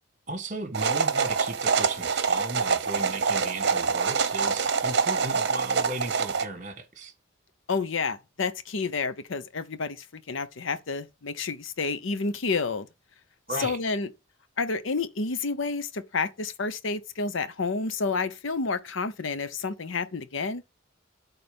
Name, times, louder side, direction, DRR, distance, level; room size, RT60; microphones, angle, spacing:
voice 1, 0.3-7.1 13.5-13.8, right 2 dB, 35° right, 1.7 m, -35 dB
sound 1, 0.7-6.4, right 5 dB, 55° right, 0.9 m, -25 dB
voice 2, 7.7-12.9 13.6-14.1 14.6-20.6, left 4 dB, 70° left, 0.7 m, -30 dB
12.0 x 4.1 x 5.3 m
head